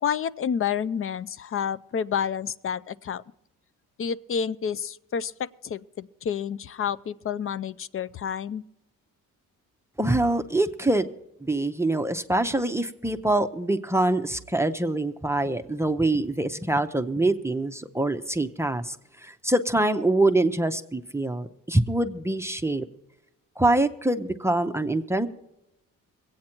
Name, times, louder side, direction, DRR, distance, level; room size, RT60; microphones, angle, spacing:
voice 1, 0.0-3.2 4.0-8.6, left 7 dB, 40° left, 18 dB, 0.5 m, -29 dB
voice 2, 10.0-11.1 11.4-19.0 19.2-22.9 23.6-25.3, right 2 dB, 10° right, 7 dB, 0.6 m, -24 dB
22.5 x 8.7 x 4.4 m, 0.88 s
cardioid pair, 100°, 32 cm